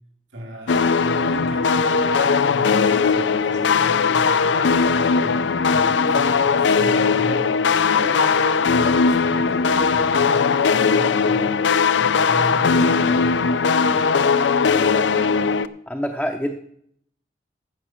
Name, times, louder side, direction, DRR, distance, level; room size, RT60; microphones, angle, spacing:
voice 1, 0.3-11.6 12.0-14.4, right 1 dB, 85° right, 3.3 m, -35 dB
sound 1, 0.7-15.7, left 5 dB, 75° left, 0.5 m, -19 dB
voice 2, 15.9-16.6, equal, 5° left, 0.6 m, -26 dB
15.0 x 5.9 x 6.3 m
head